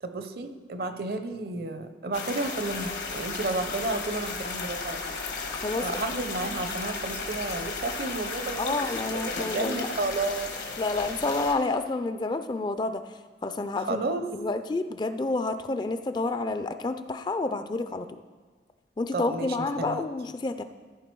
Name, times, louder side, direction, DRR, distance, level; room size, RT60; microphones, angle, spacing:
voice 1, 0.0-5.0 5.8-10.5 13.8-14.3 19.1-20.0, right 2 dB, 60° right, 8 dB, 0.7 m, -32 dB
sound 1, 2.1-11.5, left 4 dB, 80° left, 1.3 m, -34 dB
voice 2, 5.5-5.9 8.6-9.9 10.8-13.0 13.4-14.0 14.3-18.1 19.0-20.6, left 3 dB, 25° left, 9 dB, 0.3 m, -29 dB
14.5 x 4.9 x 4.6 m, 1.5 s
head